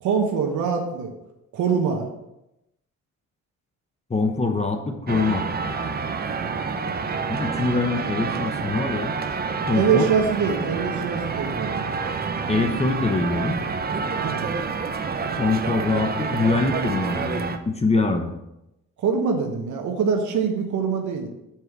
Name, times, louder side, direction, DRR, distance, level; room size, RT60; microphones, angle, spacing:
voice 1, 0.0-1.1 1.5-2.1 9.7-12.0 14.2-14.5 19.0-21.3, right 6 dB, 75° right, 2 dB, 1.3 m, -24 dB
voice 2, 4.1-5.5 7.3-9.1 9.7-10.1 12.5-13.6 15.4-18.3, left 3 dB, 20° left, 4 dB, 0.9 m, -24 dB
sound 1, 5.1-17.6, right 5 dB, 30° right, 0.8 m, -28 dB
7.4 x 4.9 x 6.0 m, 0.89 s
cardioid pair, 90°, 30 cm